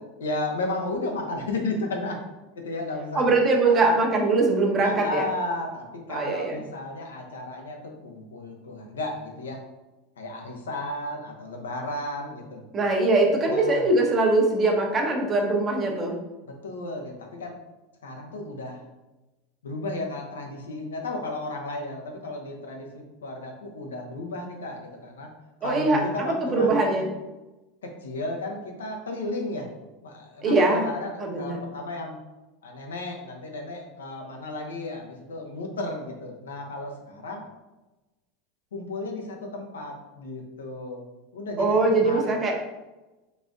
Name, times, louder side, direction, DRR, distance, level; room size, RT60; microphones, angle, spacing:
voice 1, 0.0-2.2 2.6-3.2 3.7-3.9 4.8-9.6 10.2-12.6 13.5-13.8 16.4-17.5 18.0-18.8 19.6-25.3 25.6-27.0 27.8-29.7 30.0-32.2 32.6-37.4 38.7-41.1 41.3-42.4, left 2 dB, 80° left, 2 dB, 0.7 m, -33 dB
voice 2, 3.1-5.3 6.1-6.6 12.7-16.2 25.6-26.0 26.5-27.1 30.4-30.8 31.2-31.6 41.6-42.5, right 2 dB, 30° right, 0 dB, 1.0 m, -22 dB
4.1 x 3.4 x 2.5 m, 1.1 s
hypercardioid pair, 85°, 0 cm